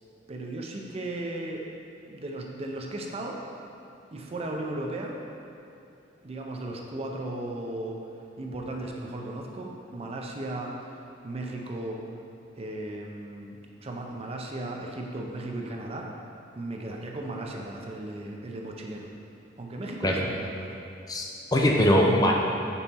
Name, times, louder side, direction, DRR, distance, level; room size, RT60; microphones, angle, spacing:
voice 1, 0.3-1.6 2.1-3.4 4.1-5.2 6.2-8.1 8.4-11.0 11.2-12.0 12.6-16.1 16.6-19.1 19.6-20.8, right 1 dB, 35° right, 0 dB, 0.5 m, -36 dB
voice 2, 21.1-22.3, equal, 20° left, 0 dB, 0.4 m, -22 dB
5.4 x 4.3 x 4.1 m, 2.8 s
head